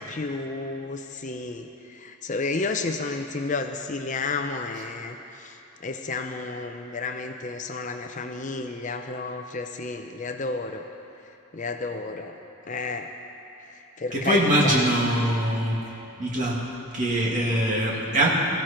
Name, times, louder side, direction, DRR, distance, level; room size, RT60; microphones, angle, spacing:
voice 1, 0.0-10.8 11.5-12.4 12.7-13.1 13.7-14.9, left 3 dB, 35° left, 6 dB, 0.6 m, -32 dB
voice 2, 14.1-15.8 16.2-16.7 16.9-18.3, right 1 dB, 35° right, -4 dB, 2.4 m, -23 dB
20.5 x 15.0 x 4.4 m, 2.9 s
head